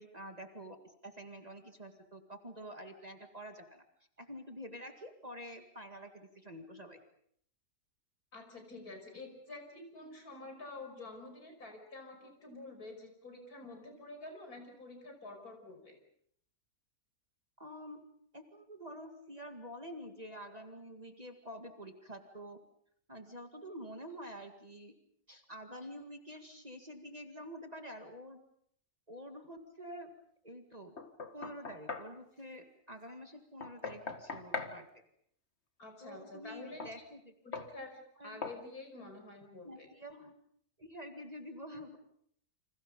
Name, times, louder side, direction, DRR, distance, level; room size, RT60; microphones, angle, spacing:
voice 1, 0.0-3.8 4.2-7.0 17.6-18.0 18.3-22.6 23.1-24.9 25.3-28.4 29.1-30.1 30.4-30.9 31.3-34.9 36.0-37.3 38.2-38.5 39.6-40.3 40.8-42.0, equal, 25° right, 5 dB, 2.1 m, -48 dB
voice 2, 8.3-16.0 35.8-36.8 37.4-39.9, left 2 dB, 70° left, 4 dB, 6.0 m, -49 dB
Knock, 31.0-32.1 33.6-34.8 36.8-37.0 37.5-37.7 38.4-38.6, left 4 dB, 45° left, 1.9 m, -41 dB
29.5 x 26.5 x 5.4 m, 0.66 s
omnidirectional pair, 1.6 m